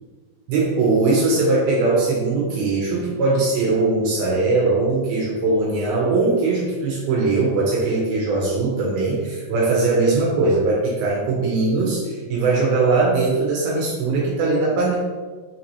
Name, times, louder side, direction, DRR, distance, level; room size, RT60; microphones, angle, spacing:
voice 1, 0.5-15.0, right 3 dB, 80° right, -4 dB, 2.3 m, -20 dB
6.0 x 2.9 x 2.6 m, 1.4 s
omnidirectional pair, 4.7 m